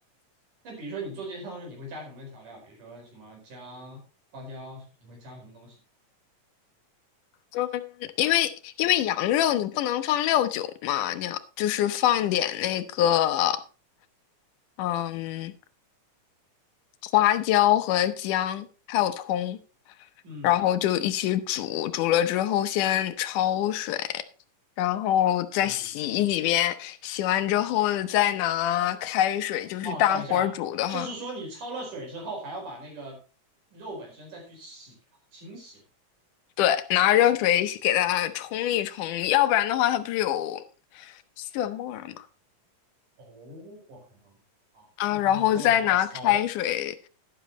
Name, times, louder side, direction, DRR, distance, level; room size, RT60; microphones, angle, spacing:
voice 1, 0.6-4.0 4.3-5.8 20.2-20.5 25.6-25.9 29.8-30.5 30.9-33.2 33.7-35.0 35.3-35.8 43.2-44.4 44.7-46.4, right 2 dB, 75° right, 6.2 m, -40 dB
voice 2, 7.5-13.6 14.8-15.5 17.0-19.6 20.4-24.2 24.8-31.1 36.6-40.6 41.0-42.2 45.0-47.1, left 12 dB, 80° left, 2.3 m, -25 dB
12.0 x 11.0 x 3.0 m
omnidirectional pair, 3.7 m